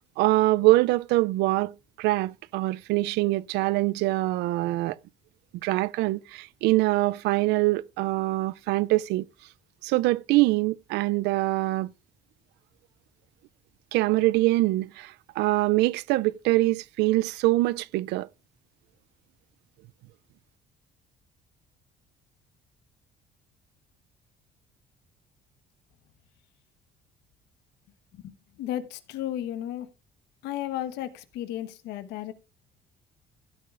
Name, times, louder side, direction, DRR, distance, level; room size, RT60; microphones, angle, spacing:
voice 1, 0.2-1.7 2.0-5.0 5.6-9.2 9.8-11.9 13.9-18.3, right 19 dB, 85° right, 0.4 m, -24 dB
voice 2, 28.1-29.9 30.4-32.3, left 12 dB, 85° left, 1.2 m, -34 dB
15.5 x 8.1 x 2.5 m
cardioid pair, 110°, 17 cm